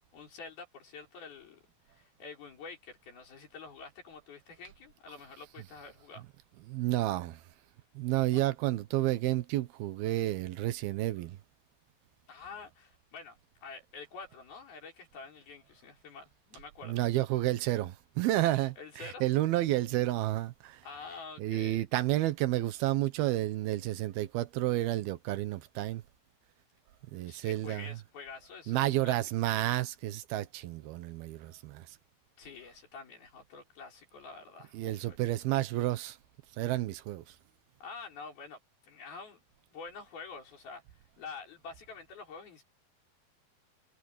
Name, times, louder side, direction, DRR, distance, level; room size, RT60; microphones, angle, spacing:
voice 1, 0.1-1.6 1.9-6.3 8.3-8.4 12.3-17.0 18.8-19.3 20.8-21.8 27.3-29.2 32.4-35.2 37.8-39.4 39.7-42.6, left 4 dB, 80° left, 7.4 m, -47 dB
voice 2, 6.7-7.4 7.9-11.4 16.8-20.8 21.4-26.0 27.1-28.0 28.7-32.0 34.7-36.2 36.6-37.4, right 15 dB, 85° right, 3.0 m, -31 dB
omnidirectional pair, 4.2 m